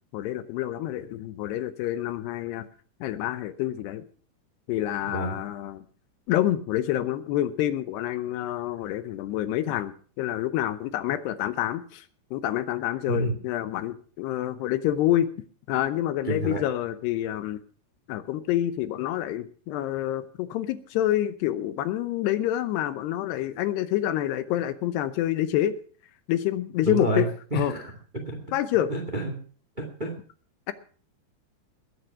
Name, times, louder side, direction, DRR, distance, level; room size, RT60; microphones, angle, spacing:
voice 1, 0.1-2.6 3.0-4.0 4.7-5.9 6.3-12.0 12.3-15.3 15.7-17.6 18.1-25.8 26.3-27.3 27.5-27.7 28.5-28.9, left 12 dB, 75° left, 12 dB, 2.8 m, -27 dB
voice 2, 5.0-5.3 13.1-13.3 16.3-16.6 26.8-27.2 27.5-27.9 28.2-28.3 28.9-29.3 29.8-30.1, right 1 dB, 25° right, 4 dB, 0.9 m, -28 dB
20.5 x 8.2 x 5.8 m, 0.43 s
omnidirectional pair, 5.0 m